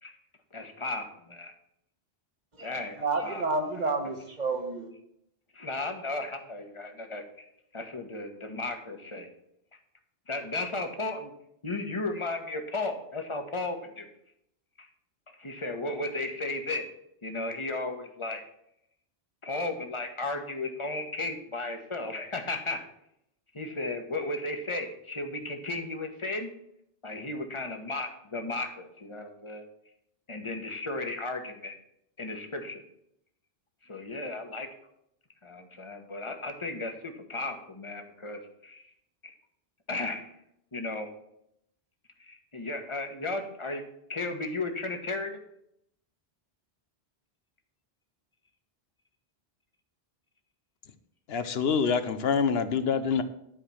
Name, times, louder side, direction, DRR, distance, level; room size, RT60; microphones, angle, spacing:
voice 1, 0.5-1.5 2.6-3.4 3.7-3.9 5.5-7.2 7.7-9.3 10.3-11.3 11.6-14.1 14.8-14.9 15.3-16.9 17.2-18.4 19.4-22.8 23.5-26.5 27.0-29.6 30.3-31.7 32.2-32.8 33.8-34.7 35.4-38.8 39.2-39.3 39.9-40.3 40.7-41.1 42.2-43.8 44.1-45.4, left 2 dB, 30° left, 5 dB, 1.4 m, -35 dB
voice 2, 3.0-4.9, right 3 dB, 45° right, 5 dB, 1.5 m, -30 dB
voice 3, 51.3-53.2, left 6 dB, 70° left, 11 dB, 1.0 m, -26 dB
11.0 x 4.9 x 7.2 m, 0.76 s
omnidirectional pair, 1.1 m